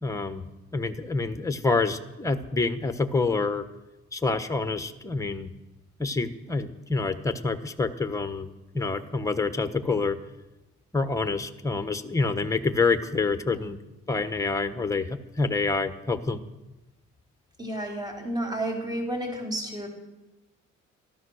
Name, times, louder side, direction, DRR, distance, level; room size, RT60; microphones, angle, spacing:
voice 1, 0.0-0.4 0.7-3.6 4.1-5.5 6.0-10.2 10.9-13.8 14.1-16.4, left 3 dB, 10° left, 9 dB, 1.1 m, -27 dB
voice 2, 17.6-19.9, right 1 dB, 15° right, 1 dB, 3.7 m, -31 dB
13.5 x 13.0 x 6.4 m, 1.0 s
cardioid pair, 90°, 30 cm